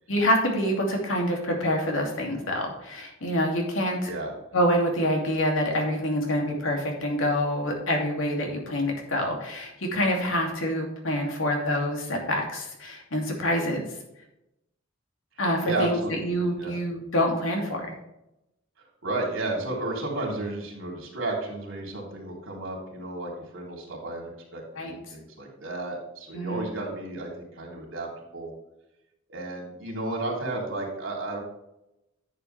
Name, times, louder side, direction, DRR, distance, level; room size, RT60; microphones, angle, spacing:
voice 1, 0.1-4.1 4.5-13.9 15.4-17.9 24.8-25.0 26.3-26.7, equal, 85° left, 0 dB, 2.6 m, -26 dB
voice 2, 15.6-16.2 16.6-16.7 18.8-28.1 28.3-28.5 29.3-31.4, right 2 dB, 85° right, -1 dB, 3.3 m, -33 dB
10.5 x 7.1 x 3.4 m, 0.88 s
head